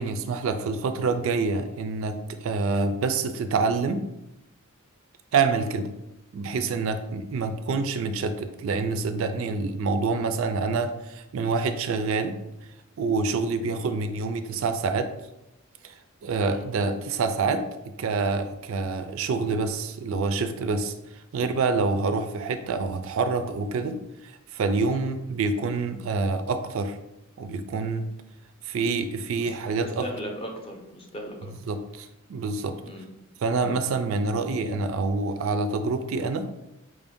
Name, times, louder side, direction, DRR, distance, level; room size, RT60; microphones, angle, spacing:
voice 1, 0.0-4.0 5.3-5.9 6.3-12.4 13.0-15.1 15.8-15.9 16.2-17.7 18.0-20.9 21.3-27.0 27.4-28.1 28.6-30.1 31.7-32.8 33.4-36.6, right 4 dB, 65° right, 9 dB, 0.4 m, -27 dB
voice 2, 29.8-31.5 32.8-33.1 33.5-33.7, equal, 25° left, 2 dB, 0.6 m, -38 dB
4.6 x 2.6 x 3.5 m, 0.89 s
head